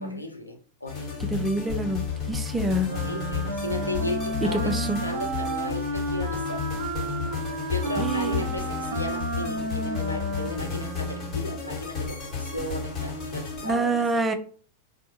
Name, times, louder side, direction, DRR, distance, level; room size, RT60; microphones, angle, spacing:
voice 1, 0.0-1.3 2.9-4.7 5.0-6.6 7.6-14.1, left 1 dB, 85° left, 3 dB, 0.6 m, -35 dB
sound 1, 0.9-13.7, left 6 dB, 30° left, 1.4 m, -32 dB
voice 2, 1.3-2.9 4.4-5.0 8.0-8.6 13.6-14.3, right 1 dB, 15° right, 8 dB, 0.5 m, -27 dB
Wind instrument woodwind instrument, 2.8-11.5, right 2 dB, 50° right, 0.8 m, -32 dB
4.2 x 2.2 x 2.8 m, 0.43 s
figure-of-eight pair, 90°, 0 cm